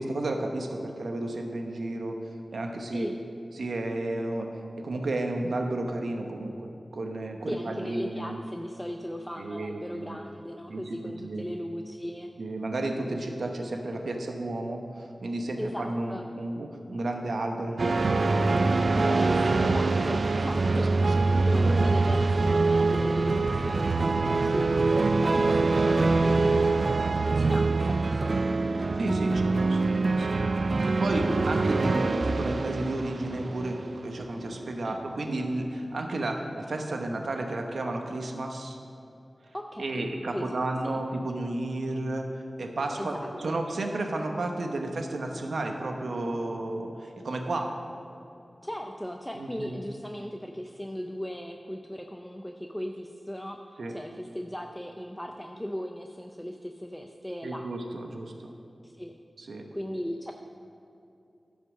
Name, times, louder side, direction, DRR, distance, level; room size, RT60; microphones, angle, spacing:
voice 1, 0.0-2.2 2.5-3.1 3.6-4.5 4.8-8.3 9.4-10.2 10.7-10.9 11.2-11.4 12.4-14.8 15.2-18.2 20.7-20.8 21.2-21.9 25.3-25.7 29.0-33.8 34.0-38.8 39.8-42.3 42.6-47.7 49.4-49.8 53.8-53.9 57.4-58.5 59.5-59.6, right 2 dB, 85° right, 3 dB, 0.9 m, -32 dB
voice 2, 7.5-12.3 15.6-16.2 19.0-21.1 21.4-26.8 27.2-28.4 34.8-35.0 39.5-40.5 40.8-41.0 43.0-43.6 48.6-57.7 58.8-59.1 59.7-60.3, equal, 10° left, 3 dB, 0.5 m, -37 dB
sound 1, 17.8-34.6, right 3 dB, 65° right, 0.4 m, -24 dB
11.0 x 5.4 x 6.3 m, 2.7 s
cardioid pair, 50°, 0 cm